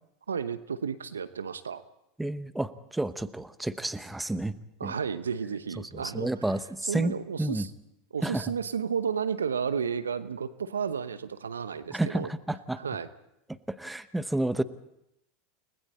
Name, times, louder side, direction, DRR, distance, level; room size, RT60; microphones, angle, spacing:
voice 1, 0.3-1.8 4.8-6.3 6.9-7.7 8.1-12.3 12.8-13.1, right 6 dB, 85° right, 14 dB, 0.9 m, -32 dB
voice 2, 2.2-4.6 4.8-4.9 5.9-7.1 7.4-7.7 8.2-8.4 11.9-12.8 13.7-14.6, right 1 dB, 5° right, 13 dB, 1.1 m, -30 dB
29.5 x 20.0 x 4.4 m, 0.83 s
hypercardioid pair, 85°, 0 cm